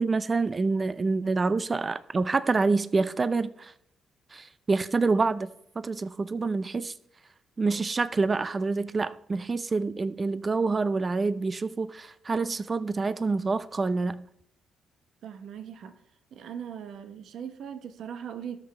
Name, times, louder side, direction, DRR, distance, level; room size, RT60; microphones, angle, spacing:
voice 1, 0.0-3.7 4.3-5.5 5.8-6.9 7.6-14.3, right 3 dB, 30° right, 0.4 m, -27 dB
voice 2, 15.2-15.9 16.3-18.6, right 8 dB, 70° right, 0.9 m, -39 dB
17.0 x 6.1 x 3.3 m
cardioid pair, 90°, 0 cm